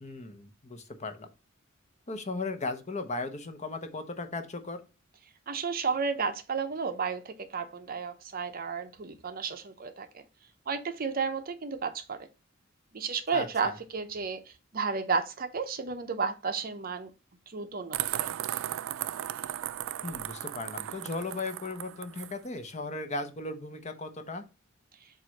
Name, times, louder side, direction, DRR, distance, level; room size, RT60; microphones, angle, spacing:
voice 1, 0.0-1.3 2.1-4.8 13.3-13.8 20.0-24.4, left 3 dB, 35° left, 0.9 m, -37 dB
voice 2, 5.5-10.1 10.7-12.3 12.9-17.1 17.5-18.3, right 5 dB, 45° right, 0.7 m, -32 dB
sound 1, 17.9-22.3, right 12 dB, 75° right, 0.3 m, -35 dB
7.5 x 2.6 x 5.2 m
head